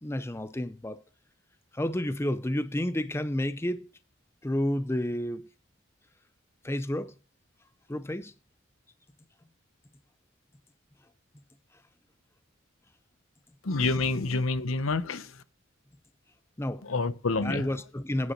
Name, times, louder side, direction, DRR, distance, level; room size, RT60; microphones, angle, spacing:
voice 1, 0.0-1.0 1.7-3.9 4.4-5.5 6.6-7.1 7.9-8.3 16.6-16.8 17.4-18.3, left 1 dB, 10° left, 0.5 m, -30 dB
voice 2, 13.6-15.4 16.8-17.8, left 3 dB, 90° left, 0.9 m, -28 dB
9.7 x 8.1 x 6.6 m
head